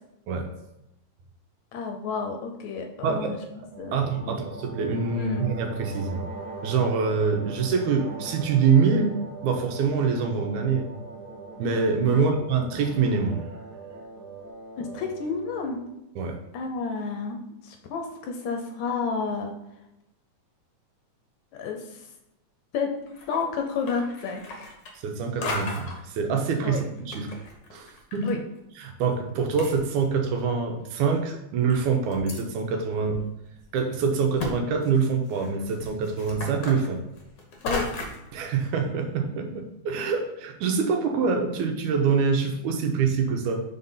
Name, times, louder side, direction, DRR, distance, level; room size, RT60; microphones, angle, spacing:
voice 1, 1.7-3.4 3.8-4.0 4.2-4.4 5.2-5.6 12.1-12.3 14.8-15.8 16.5-17.4 17.6-19.5 21.5-22.1 22.7-22.9 23.3-24.7 26.6-26.8 28.2-28.4 37.6-37.9, left 5 dB, 75° left, 3 dB, 1.9 m, -30 dB
sound 1, 3.7-15.9, right 3 dB, 60° right, 1.3 m, -41 dB
voice 2, 3.9-6.2 6.6-9.1 9.4-10.9 11.6-13.5 16.2-16.4 25.0-27.3 27.7-28.3 28.8-33.2 33.7-37.0 38.3-43.6, right 5 dB, 75° right, 3 dB, 2.2 m, -25 dB
sound 2, 23.1-23.5 23.8-25.2 25.4-26.0 26.7-28.3 28.6-28.7 29.3-29.4 29.6-30.4 30.9-31.0 31.7-32.4 33.1-33.2 33.6-33.7 34.4-34.5 34.8-38.3, left 2 dB, 55° left, 1.3 m, -35 dB
6.0 x 4.0 x 5.5 m, 0.87 s
omnidirectional pair, 3.6 m